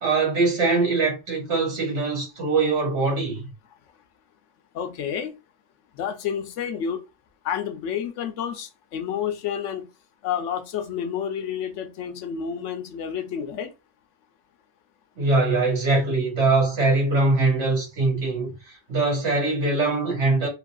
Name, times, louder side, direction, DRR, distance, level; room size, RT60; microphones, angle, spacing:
voice 1, 0.0-3.4 15.2-18.5 18.9-20.5, right 3 dB, 75° right, 1.7 m, -22 dB
voice 2, 4.7-5.3 5.9-7.0 7.4-9.9 10.2-13.7, left 8 dB, 85° left, 0.9 m, -29 dB
2.9 x 2.6 x 2.3 m
omnidirectional pair, 1.2 m